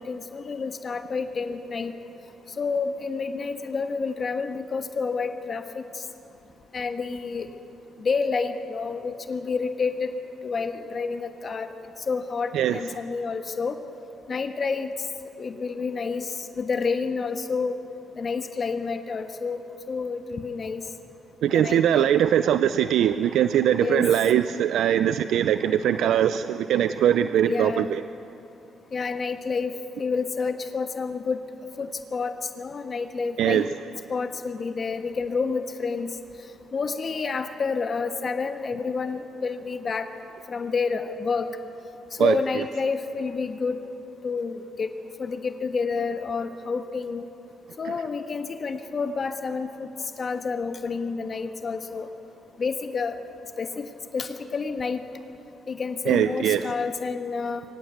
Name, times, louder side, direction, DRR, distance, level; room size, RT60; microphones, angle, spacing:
voice 1, 0.0-1.9 2.6-6.0 6.7-7.5 8.0-10.1 10.4-11.7 12.1-13.8 14.3-14.9 15.4-17.8 18.1-19.6 19.9-20.8 21.5-22.2 23.8-24.1 27.4-27.9 28.9-31.4 31.8-33.7 34.1-36.1 36.7-40.1 40.5-41.5 42.2-43.8 44.2-44.9 45.2-47.2 47.8-49.9 50.2-52.1 52.6-53.2 53.6-53.8 54.1-55.0 55.7-57.6, left 4 dB, 45° left, 7 dB, 1.3 m, -29 dB
voice 2, 21.4-28.0 33.4-33.7 42.2-42.4 56.1-56.6, right 10 dB, 75° right, 12 dB, 0.4 m, -21 dB
23.5 x 18.0 x 8.1 m, 2.8 s
cardioid pair, 90°, 0 cm